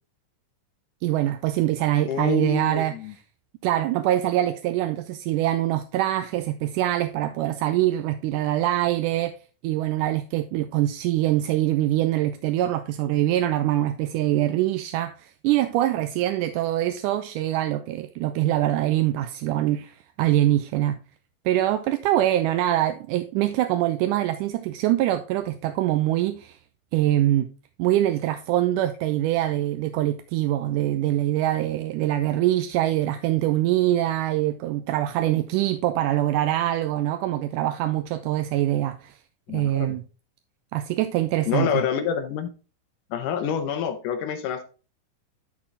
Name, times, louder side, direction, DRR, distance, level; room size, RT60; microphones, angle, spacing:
voice 1, 1.0-2.9 3.6-9.4 9.6-21.0 21.5-26.6 26.9-27.5 27.8-39.2 39.5-40.0 40.7-41.8, right 14 dB, 80° right, 1.9 m, -24 dB
voice 2, 2.1-3.1 39.5-40.0 41.5-42.5 43.1-44.6, left 8 dB, 75° left, 2.2 m, -27 dB
12.0 x 4.2 x 3.7 m
omnidirectional pair, 4.0 m